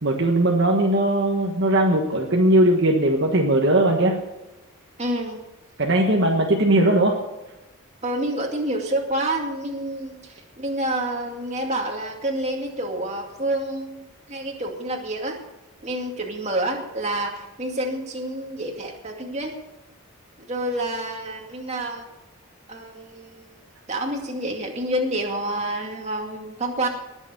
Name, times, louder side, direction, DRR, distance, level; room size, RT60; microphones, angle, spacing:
voice 1, 0.0-4.1 5.8-7.2, right 1 dB, 50° right, 0 dB, 1.4 m, -19 dB
voice 2, 5.0-5.4 8.0-15.4 15.8-19.6 20.5-22.1 22.7-23.5 23.9-26.9, right 1 dB, 30° right, 1 dB, 2.3 m, -28 dB
20.5 x 7.1 x 6.8 m, 1.0 s
head